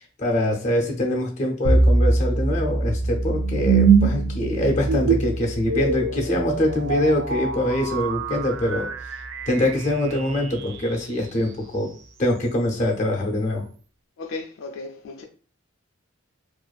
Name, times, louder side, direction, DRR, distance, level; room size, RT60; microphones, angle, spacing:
voice 1, 0.2-8.9 9.5-11.9 12.2-13.6, left 1 dB, 35° left, 0.6 m, -24 dB
sound 1, 1.6-10.8, right 3 dB, 70° right, 0.3 m, -23 dB
voice 2, 14.2-15.3, left 3 dB, 80° left, 0.3 m, -35 dB
2.4 x 2.4 x 2.2 m
head